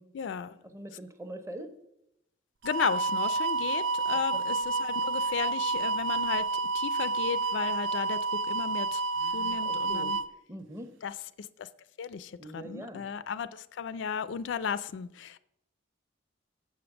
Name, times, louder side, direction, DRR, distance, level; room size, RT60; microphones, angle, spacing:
voice 1, 0.1-0.6 2.6-6.5 6.7-8.2 8.5-9.0 9.3-10.2 11.0-11.1 11.4-11.7 12.0-15.4, left 7 dB, 65° left, 0.4 m, -34 dB
voice 2, 0.7-1.7 4.1-4.4 9.2-10.2 10.5-10.9 12.4-13.1, right 1 dB, 15° right, 0.7 m, -43 dB
sound 1, 2.6-10.2, right 3 dB, 75° right, 0.5 m, -29 dB
7.4 x 5.1 x 7.0 m
head